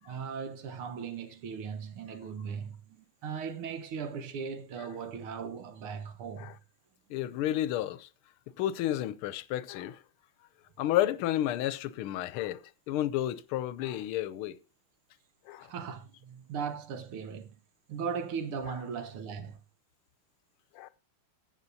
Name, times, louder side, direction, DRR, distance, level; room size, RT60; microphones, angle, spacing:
voice 1, 0.0-6.6 15.6-17.5 17.9-19.6, right 6 dB, 80° right, 1.9 m, -38 dB
voice 2, 7.1-8.1 8.6-10.0 10.8-14.6 15.5-15.7 20.7-20.9, left 13 dB, 85° left, 1.5 m, -31 dB
14.5 x 8.4 x 2.7 m
omnidirectional pair, 2.3 m